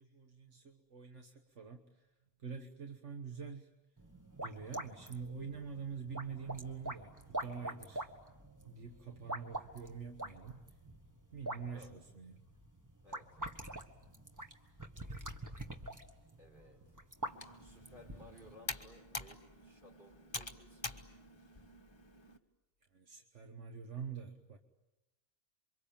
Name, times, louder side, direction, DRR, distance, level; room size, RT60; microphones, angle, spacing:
voice 1, 0.0-2.1 2.4-3.7 4.4-8.1 8.7-10.6 11.3-12.4 22.9-24.6, right 6 dB, 80° right, 5 dB, 1.7 m, -46 dB
sound 1, 4.0-18.5, right 1 dB, 15° right, 1.6 m, -46 dB
voice 2, 16.4-16.8 17.6-21.0, left 1 dB, 45° right, 1 dB, 5.8 m, -59 dB
Computer keyboard, 17.2-22.4, left 2 dB, 25° left, 1.4 m, -47 dB
28.0 x 24.5 x 8.8 m, 1.0 s
omnidirectional pair, 1.2 m